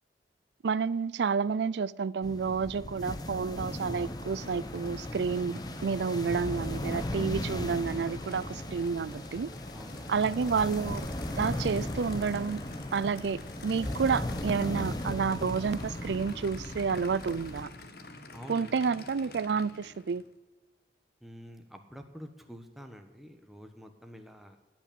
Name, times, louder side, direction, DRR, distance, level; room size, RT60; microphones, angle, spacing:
voice 1, 0.6-9.5 10.1-11.0 11.4-12.6 12.9-17.7 18.5-20.2, right 5 dB, 80° right, 0.4 m, -30 dB
sound 1, 2.2-17.6, left 1 dB, 20° left, 0.9 m, -37 dB
Aircraft / Idling, 3.5-20.3, left 2 dB, 60° left, 1.3 m, -49 dB
voice 2, 9.7-10.1 18.3-19.4 21.2-24.6, equal, ahead, 1.1 m, -48 dB
17.0 x 6.1 x 8.5 m
head